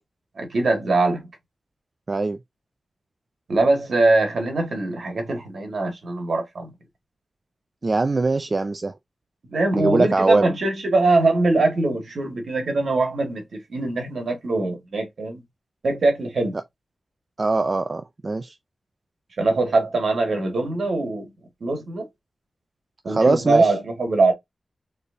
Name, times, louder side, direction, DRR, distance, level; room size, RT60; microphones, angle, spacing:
voice 1, 0.4-1.3 3.5-6.7 9.5-15.4 15.8-16.6 19.4-21.3 21.6-22.1 23.0-24.3, right 2 dB, 65° right, 1.9 m, -22 dB
voice 2, 2.1-2.4 7.8-8.9 9.7-10.5 17.4-18.5 23.1-23.7, right 3 dB, 35° right, 0.4 m, -22 dB
4.3 x 3.3 x 2.6 m
wide cardioid pair, 145°, 0 cm